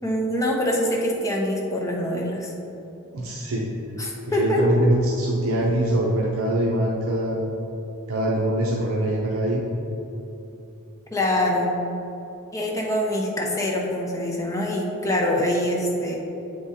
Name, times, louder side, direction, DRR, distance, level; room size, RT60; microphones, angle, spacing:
voice 1, 0.0-2.5 4.0-4.8 11.1-11.7 12.5-16.2, left 1 dB, 15° left, -2 dB, 0.8 m, -24 dB
voice 2, 3.1-3.7 4.4-7.4 8.1-9.6, right 1 dB, 70° right, -3 dB, 0.7 m, -23 dB
7.7 x 3.7 x 4.1 m, 2.9 s
head